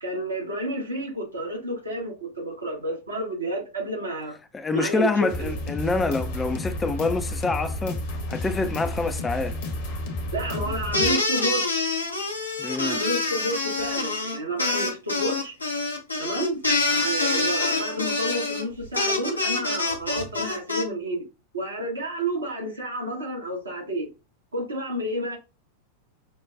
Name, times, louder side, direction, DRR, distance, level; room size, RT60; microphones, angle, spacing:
voice 1, 0.0-4.4 4.7-5.5 10.3-11.8 12.8-15.5 16.2-16.6 16.9-21.3 21.5-24.1 24.5-25.4, right 1 dB, 75° right, 1.2 m, -30 dB
voice 2, 4.5-8.0 8.3-9.6 12.6-13.0, left 3 dB, 15° left, 0.4 m, -26 dB
sound 1, 5.3-11.1, left 1 dB, 50° left, 1.0 m, -31 dB
sound 2, 10.9-20.8, left 3 dB, 80° left, 0.7 m, -26 dB
5.9 x 2.2 x 2.5 m
figure-of-eight pair, 90°, 0 cm